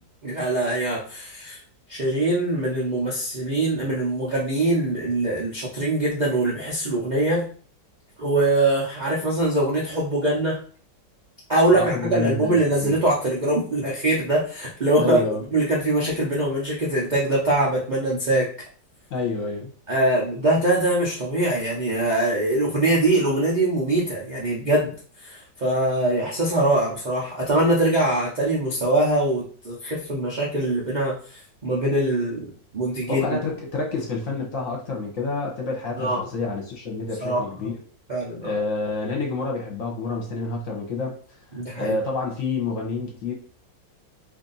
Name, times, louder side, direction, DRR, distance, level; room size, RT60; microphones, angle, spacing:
voice 1, 0.2-1.6 1.9-7.4 8.2-10.6 11.5-15.2 15.5-18.5 19.9-24.9 25.2-33.4 36.0-36.3 37.2-37.4 38.1-38.5 41.5-42.0, right 1 dB, 90° right, -5 dB, 0.4 m, -23 dB
voice 2, 11.7-12.9 15.0-15.4 19.1-19.7 33.1-37.7 38.4-41.1 41.7-43.3, left 3 dB, 55° left, -1 dB, 1.1 m, -28 dB
2.8 x 2.6 x 3.9 m, 0.43 s
omnidirectional pair, 1.9 m